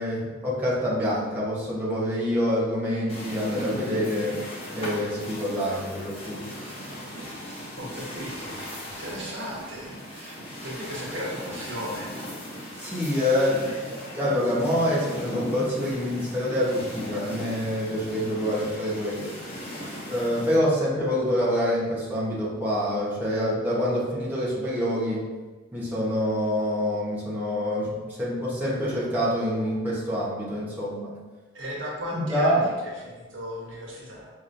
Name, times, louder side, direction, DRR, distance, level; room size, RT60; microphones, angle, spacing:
voice 1, 0.0-4.4 4.7-6.4 12.8-19.4 20.1-25.3 25.7-31.1 32.1-32.7, equal, 10° right, -8 dB, 0.9 m, -26 dB
sound 1, 3.1-20.6, equal, 30° left, 1.1 m, -38 dB
voice 2, 7.8-12.2 31.5-34.3, equal, 85° right, -4 dB, 1.2 m, -36 dB
5.4 x 3.0 x 2.6 m, 1.3 s
head